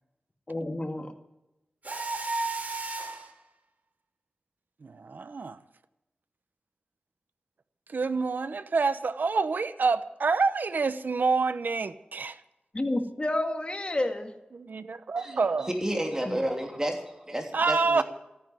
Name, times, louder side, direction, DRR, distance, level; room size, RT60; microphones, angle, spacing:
voice 1, 0.5-1.1 12.7-14.3 16.3-16.4, left 1 dB, 35° left, 5 dB, 2.0 m, -30 dB
Mechanisms, 1.8-3.3, right 3 dB, 55° right, 3.6 m, -32 dB
voice 2, 4.8-5.6 7.9-12.4 14.5-15.7 17.5-18.0, right 4 dB, 75° right, 13 dB, 0.9 m, -27 dB
voice 3, 15.2-18.0, right 1 dB, 20° right, 2 dB, 3.1 m, -31 dB
14.0 x 10.0 x 9.3 m, 0.93 s
wide cardioid pair, 55°, 3 cm